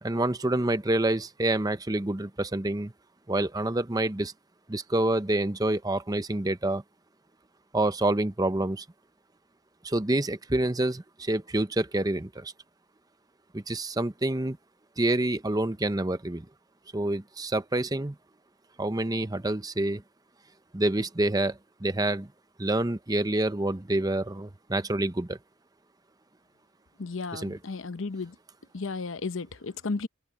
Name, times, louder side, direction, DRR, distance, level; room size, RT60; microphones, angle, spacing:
voice 1, 0.0-2.9 3.3-4.3 4.7-6.8 7.7-8.8 9.8-12.5 13.5-14.6 15.0-16.5 16.9-18.2 18.8-20.0 20.7-22.3 22.6-25.4 27.3-27.6, right 1 dB, 20° right, 0.8 m, -27 dB
voice 2, 27.0-28.4 28.7-30.1, left 3 dB, 75° left, 0.8 m, -34 dB
open air
head